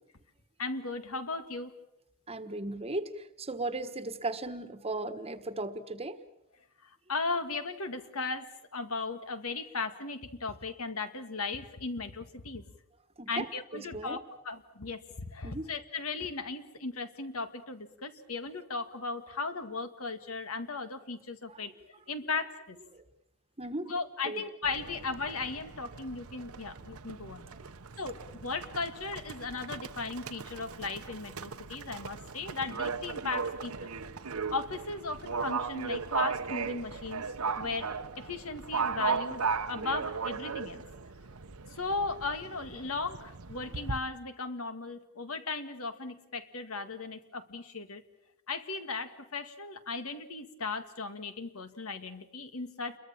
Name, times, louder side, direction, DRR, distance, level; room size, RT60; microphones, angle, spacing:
voice 1, 0.6-1.7 6.8-12.6 13.3-21.7 22.1-22.8 23.9-27.5 28.0-33.9 34.5-37.2 37.6-40.8 41.7-48.0 48.5-53.0, left 4 dB, 70° left, 10 dB, 1.9 m, -37 dB
voice 2, 2.3-6.2 13.2-13.5 13.7-14.2 15.4-15.6 22.9-23.0 23.6-23.9 24.2-24.4, right 2 dB, 25° right, 10 dB, 1.4 m, -36 dB
Livestock farm animals working animals, 24.6-44.0, right 5 dB, 75° right, 1.0 m, -37 dB
29.0 x 22.5 x 7.3 m, 0.84 s
head